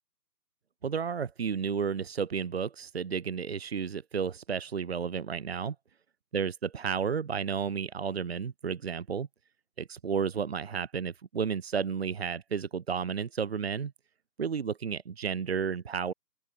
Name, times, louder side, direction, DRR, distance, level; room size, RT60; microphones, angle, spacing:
voice 1, 0.8-5.7 6.3-9.3 9.8-13.9 14.4-16.1, right 6 dB, 35° right, 3.2 m, -32 dB
open air
figure-of-eight pair, 150°, 50 cm